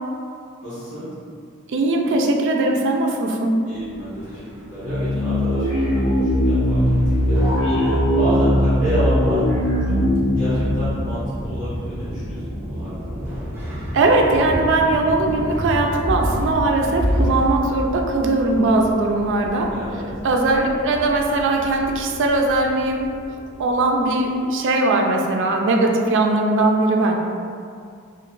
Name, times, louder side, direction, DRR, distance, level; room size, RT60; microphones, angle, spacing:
voice 1, 0.6-1.1 3.7-9.4 9.9-10.0 10.3-13.4 18.4-18.7 19.7-20.0 24.3-24.4, right 1 dB, 60° left, -14 dB, 1.4 m, -30 dB
voice 2, 1.7-3.6 13.9-19.7 20.2-23.1 23.6-27.2, right 2 dB, 60° right, 2 dB, 0.4 m, -19 dB
sound 1, 3.7-19.4, equal, 10° right, 0.6 m, -31 dB
sound 2, 4.8-12.0, equal, 80° left, 1.2 m, -20 dB
sound 3, 6.1-24.3, equal, 15° left, 1.2 m, -34 dB
2.8 x 2.2 x 3.7 m, 2.3 s
head